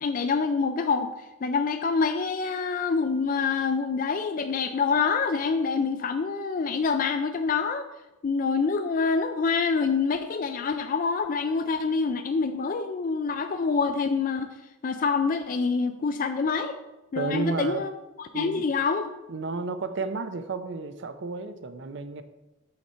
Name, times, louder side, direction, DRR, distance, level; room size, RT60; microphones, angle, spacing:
voice 1, 0.0-1.1 1.4-7.9 8.2-14.5 14.8-16.8 17.1-17.9 18.3-19.1, left 5 dB, 40° left, 7 dB, 0.3 m, -26 dB
voice 2, 17.1-17.9 18.3-18.7 19.3-22.2, right 4 dB, 60° right, 11 dB, 0.6 m, -32 dB
6.6 x 5.7 x 4.4 m, 0.99 s
head